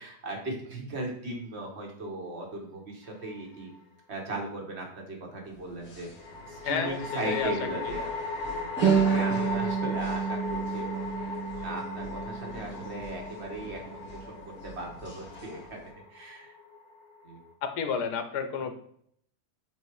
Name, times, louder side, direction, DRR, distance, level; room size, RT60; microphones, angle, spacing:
voice 1, 0.0-3.7 4.1-6.1 6.4-8.1 8.4-11.2 11.6-15.8 16.1-16.5 17.2-17.4, right 2 dB, 40° right, 1 dB, 1.5 m, -38 dB
sound 1, 3.1-3.8 6.2-17.5, left 3 dB, 65° left, 1.6 m, -38 dB
sound 2, 5.4-15.9, left 2 dB, 45° left, 1.5 m, -44 dB
voice 2, 6.6-7.9 17.6-18.7, left 6 dB, 80° left, 8 dB, 1.3 m, -31 dB
sound 3, 8.8-13.8, right 7 dB, 70° right, 1.6 m, -29 dB
8.0 x 2.7 x 4.5 m, 0.65 s
omnidirectional pair, 1.8 m